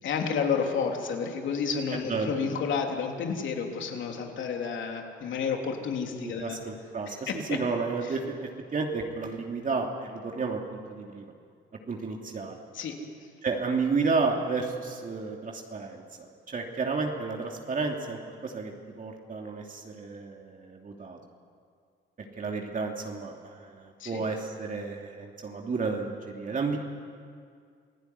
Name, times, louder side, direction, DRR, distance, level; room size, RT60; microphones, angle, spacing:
voice 1, 0.0-6.6 7.1-7.6 8.0-8.2 12.7-12.9 24.0-24.2, left 6 dB, 70° left, 2 dB, 3.5 m, -31 dB
voice 2, 6.2-10.6 10.9-11.2 11.9-12.6 13.4-18.7 19.0-21.2 22.4-26.8, right 4 dB, 40° right, 1 dB, 2.9 m, -32 dB
28.0 x 17.5 x 9.7 m, 2.2 s
cardioid pair, 90°, 20 cm